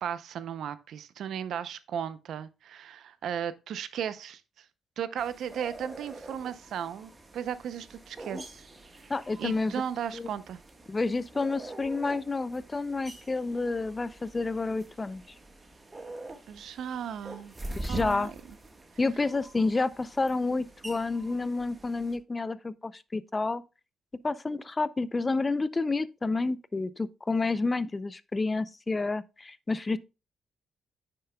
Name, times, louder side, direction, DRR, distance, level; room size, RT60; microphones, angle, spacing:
voice 1, 0.0-4.6 5.0-8.7 9.0-9.1 9.4-10.6 16.5-17.5 17.9-18.3, right 8 dB, 70° right, 0.6 m, -36 dB
sound 1, 5.2-22.2, right 2 dB, 20° right, 1.4 m, -45 dB
voice 2, 9.1-9.7 10.1-10.3 10.9-15.2 17.8-18.3 19.0-23.6 24.2-30.0, left 3 dB, 25° left, 0.4 m, -29 dB
9.5 x 6.7 x 2.2 m
cardioid pair, 90°, 0 cm